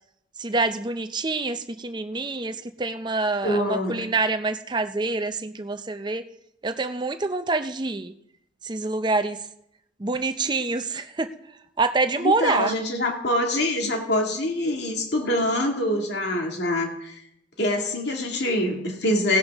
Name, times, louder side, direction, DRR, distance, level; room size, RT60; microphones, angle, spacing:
voice 1, 0.4-6.2 6.6-8.1 8.6-9.4 10.0-11.3 11.8-12.7, right 3 dB, 25° right, 9 dB, 0.5 m, -26 dB
voice 2, 3.4-4.0 12.2-17.2 17.6-19.4, left 1 dB, 65° left, 1 dB, 2.2 m, -25 dB
17.0 x 11.0 x 3.5 m, 0.77 s
head